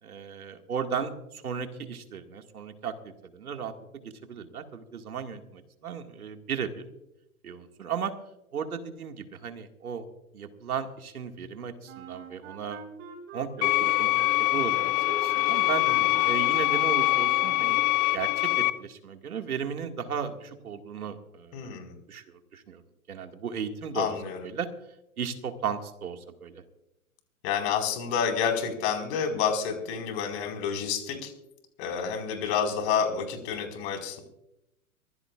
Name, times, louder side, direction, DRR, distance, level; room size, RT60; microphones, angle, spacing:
voice 1, 0.0-6.7 7.4-8.1 8.5-10.0 10.3-12.8 13.3-15.8 16.2-17.8 18.1-21.7 22.1-22.8 23.1-24.1 24.4-24.7 25.2-26.6, right 7 dB, 80° right, 5 dB, 2.1 m, -35 dB
Wind instrument woodwind instrument, 11.8-17.9, right 4 dB, 30° right, 5.1 m, -43 dB
sound 1, 13.6-18.7, left 18 dB, 25° left, 0.5 m, -24 dB
voice 2, 21.5-22.0 23.9-24.4 27.4-31.3 31.8-34.2, left 7 dB, 45° left, 3 dB, 4.8 m, -29 dB
24.0 x 15.5 x 2.5 m, 0.88 s
hypercardioid pair, 130°, 43 cm